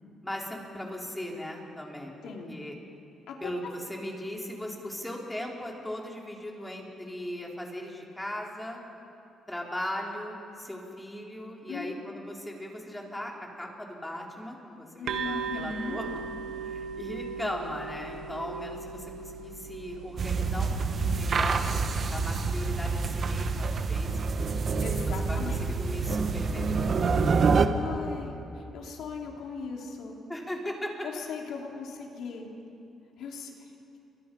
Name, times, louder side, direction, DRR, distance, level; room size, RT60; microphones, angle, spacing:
voice 1, 0.2-2.7 3.4-8.8 9.5-13.3 13.6-16.1 16.5-21.6 22.1-24.2 25.3-27.2 30.3-30.9, left 1 dB, 10° left, -1 dB, 4.4 m, -38 dB
voice 2, 2.2-2.6 3.3-3.5 11.7-12.0 15.0-16.0 24.8-25.6 27.4-30.2 31.0-32.5 33.2-33.7, left 5 dB, 75° left, 0 dB, 3.7 m, -39 dB
sound 1, 15.1-22.6, right 6 dB, 80° right, 1.2 m, -39 dB
sound 2, 20.2-27.7, right 4 dB, 50° right, 1.4 m, -27 dB
29.0 x 24.0 x 5.6 m, 2.8 s
cardioid pair, 90°, 0 cm